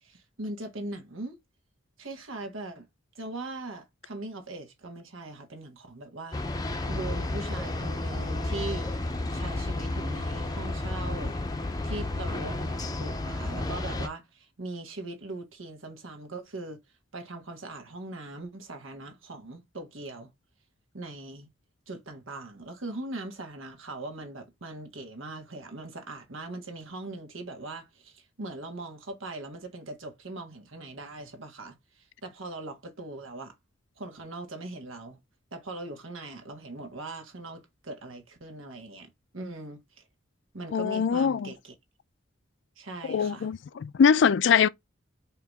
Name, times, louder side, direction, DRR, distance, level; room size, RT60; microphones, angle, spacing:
voice 1, 0.0-1.4 2.0-2.9 3.1-6.4 6.9-8.9 9.3-11.4 11.8-16.8 17.1-20.3 20.9-21.5 21.9-33.5 34.0-35.2 35.5-40.0 40.5-41.7 42.8-43.5, right 2 dB, 80° right, 1.4 m, -40 dB
sound 1, 6.3-14.1, left 2 dB, 20° left, 0.6 m, -32 dB
voice 2, 40.7-41.5 43.1-44.7, left 7 dB, 60° left, 0.3 m, -23 dB
4.6 x 2.9 x 3.5 m
head